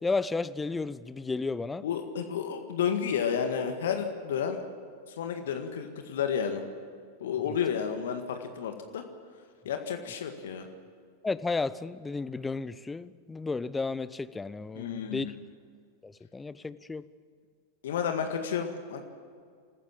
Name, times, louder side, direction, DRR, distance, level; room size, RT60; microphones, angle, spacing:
voice 1, 0.0-1.8 11.2-15.3 16.0-17.0, left 3 dB, 10° left, 16 dB, 0.7 m, -33 dB
voice 2, 1.8-4.6 5.1-6.6 7.2-9.0 9.7-10.7 14.7-15.3 17.8-19.0, left 7 dB, 60° left, 6 dB, 1.8 m, -31 dB
27.5 x 14.5 x 7.4 m, 2.2 s
figure-of-eight pair, 90°, 0 cm